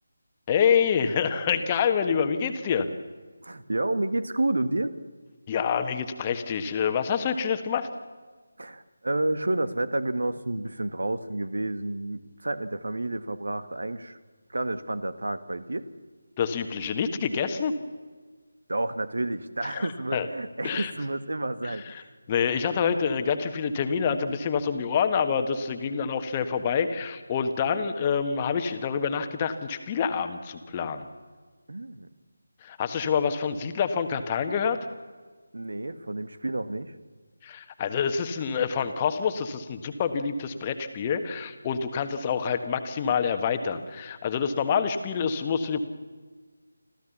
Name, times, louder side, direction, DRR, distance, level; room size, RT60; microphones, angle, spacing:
voice 1, 0.5-2.9 5.5-7.9 16.4-17.7 19.7-20.3 20.6-20.9 21.6-21.9 22.3-31.1 32.6-34.8 37.4-45.8, left 6 dB, 20° left, 8 dB, 1.4 m, -27 dB
voice 2, 3.4-5.0 8.6-14.2 14.5-15.9 18.7-22.1 31.7-32.1 35.5-36.9, right 2 dB, 65° right, 13 dB, 1.5 m, -30 dB
26.5 x 15.0 x 7.1 m, 1.4 s
figure-of-eight pair, 160°, 0 cm